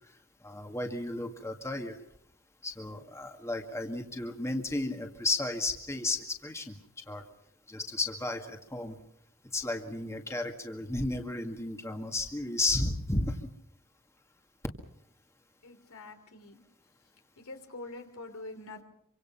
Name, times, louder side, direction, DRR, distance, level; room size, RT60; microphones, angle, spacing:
voice 1, 0.4-2.0 2.6-6.8 7.1-7.2 7.7-9.0 9.5-13.4, left 2 dB, 15° left, 3 dB, 2.0 m, -33 dB
voice 2, 15.6-16.6 17.4-18.8, left 2 dB, 75° left, 6 dB, 3.1 m, -45 dB
26.0 x 25.0 x 5.7 m, 0.74 s
head